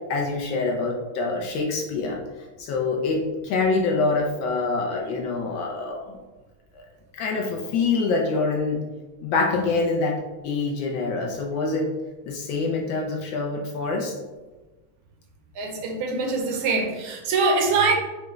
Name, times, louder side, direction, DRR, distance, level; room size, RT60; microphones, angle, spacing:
voice 1, 0.1-2.2 2.6-6.2 7.2-8.8 9.2-11.9 12.2-14.1, left 3 dB, 75° left, 1 dB, 1.2 m, -25 dB
voice 2, 15.6-17.9, right 3 dB, 75° right, 1 dB, 1.5 m, -23 dB
4.9 x 2.3 x 3.0 m, 1.2 s
omnidirectional pair, 2.4 m